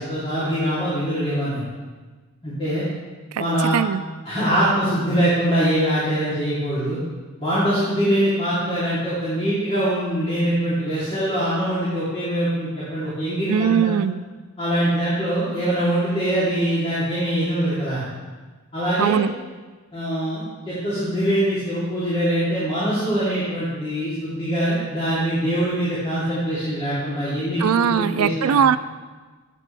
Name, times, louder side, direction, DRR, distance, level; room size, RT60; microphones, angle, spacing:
voice 1, 0.0-1.6 2.4-2.8 3.4-3.7 4.2-7.0 7.4-13.9 14.6-18.0 18.7-19.2 19.9-28.5, right 1 dB, 25° left, -12 dB, 3.1 m, -23 dB
voice 2, 3.7-4.0 13.5-14.2 19.0-19.3 27.6-28.8, right 7 dB, 85° right, 14 dB, 0.4 m, -20 dB
14.5 x 8.4 x 3.3 m, 1.4 s
head